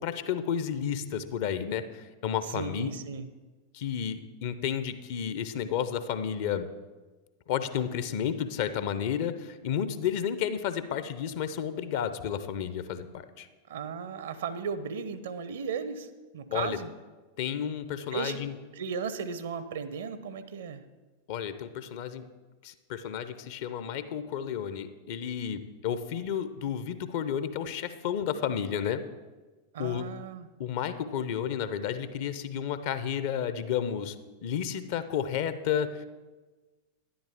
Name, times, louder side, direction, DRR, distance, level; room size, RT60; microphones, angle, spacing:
voice 1, 0.0-2.9 3.7-6.7 7.5-13.5 16.5-16.8 17.4-18.5 21.3-22.2 22.6-29.0 29.8-30.0 30.6-34.2 34.4-36.0, left 8 dB, 50° left, 12 dB, 0.6 m, -32 dB
voice 2, 2.5-3.3 13.7-16.9 18.1-18.4 18.7-20.8 29.7-30.5, right 6 dB, 60° right, 13 dB, 0.6 m, -36 dB
11.0 x 10.5 x 3.5 m, 1.3 s
figure-of-eight pair, 90°, 0 cm